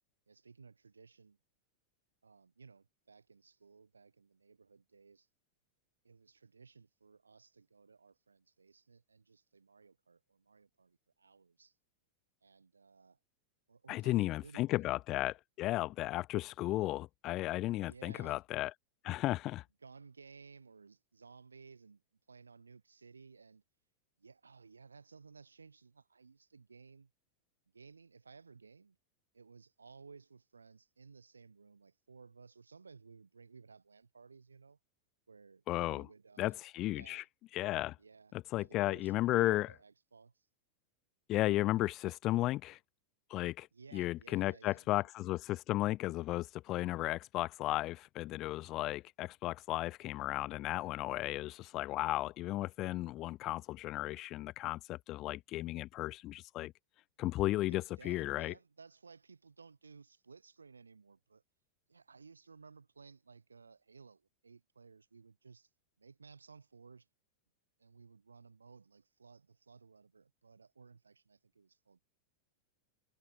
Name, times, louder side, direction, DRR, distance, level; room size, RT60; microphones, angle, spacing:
voice 1, 0.3-1.4 2.2-5.3 6.0-11.7 12.4-13.2 13.7-14.9 17.8-18.4 19.8-22.0 22.3-23.6 24.2-27.1 27.7-29.0 29.3-34.8 35.3-36.6 36.9-37.3 38.0-40.5 43.7-45.1 57.7-61.4 61.9-65.7 66.0-67.1 67.8-72.1, right 4 dB, 75° right, 4.6 m, -58 dB
voice 2, 13.9-18.7 19.0-19.6 35.7-36.1 36.4-37.2 37.5-38.0 38.5-39.7 41.3-42.8 43.3-43.7 43.9-56.7 57.2-58.5, left 16 dB, 35° left, 0.9 m, -34 dB
figure-of-eight pair, 90°, 0 cm